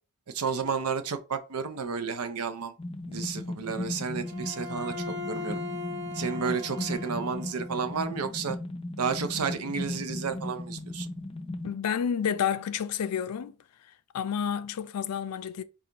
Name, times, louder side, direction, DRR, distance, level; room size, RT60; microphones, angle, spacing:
voice 1, 0.3-2.7 3.1-4.9 5.3-5.6 6.1-8.6 9.0-11.1, right 5 dB, 85° right, 0.6 m, -31 dB
sound 1, 2.8-11.7, left 1 dB, 25° left, 0.5 m, -36 dB
Bowed string instrument, 4.2-7.7, left 3 dB, 55° right, 1.0 m, -39 dB
voice 2, 11.6-13.6 14.1-15.6, left 8 dB, 90° left, 0.4 m, -30 dB
5.1 x 2.3 x 2.8 m
head